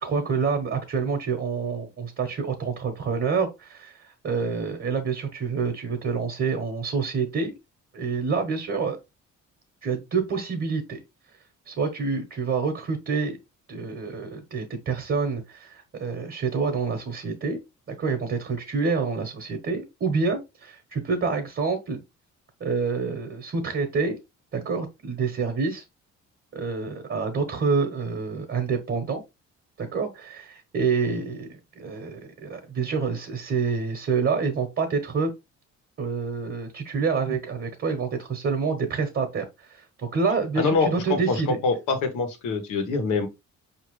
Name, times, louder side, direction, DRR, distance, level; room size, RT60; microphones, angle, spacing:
voice 1, 0.0-7.5 7.9-9.0 9.8-11.0 11.7-13.4 13.7-17.6 17.9-22.0 22.6-24.2 24.5-25.8 26.5-29.2 29.8-35.3 36.0-41.6, right 5 dB, 45° right, 1.1 m, -27 dB
voice 2, 40.6-43.3, left 4 dB, 90° left, 1.4 m, -25 dB
4.9 x 2.9 x 3.1 m
cardioid pair, 90°, 30 cm